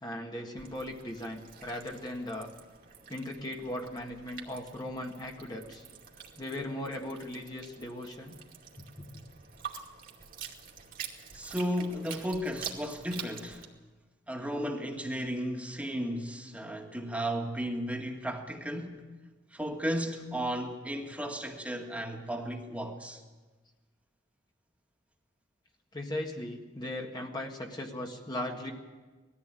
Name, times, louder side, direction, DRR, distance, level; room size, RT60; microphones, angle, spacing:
voice 1, 0.0-2.5 3.1-5.8 6.4-8.4 8.8-9.2 25.9-28.7, left 1 dB, 25° left, 1.7 m, -38 dB
sound 1, 0.6-13.7, right 7 dB, 50° right, 2.5 m, -47 dB
voice 2, 11.3-13.7 14.3-19.1 19.5-23.2, equal, 10° right, 2.0 m, -34 dB
20.0 x 14.5 x 9.0 m
head